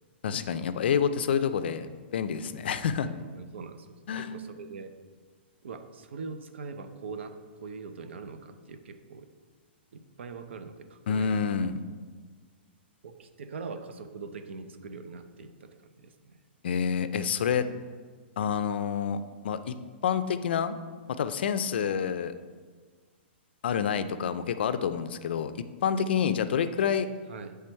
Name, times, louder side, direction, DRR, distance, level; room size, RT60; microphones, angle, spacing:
voice 1, 0.2-1.9 2.1-3.1 4.1-4.3 11.1-11.8 16.6-17.7 18.4-19.7 20.0-20.8 21.2-22.3 23.6-27.1, left 7 dB, 60° left, 11 dB, 0.4 m, -28 dB
voice 2, 3.0-5.0 5.6-9.3 9.9-11.5 13.0-16.4 27.3-27.6, right 4 dB, 80° right, 9 dB, 0.6 m, -42 dB
7.6 x 3.4 x 4.5 m, 1.5 s
hypercardioid pair, 170°, 6 cm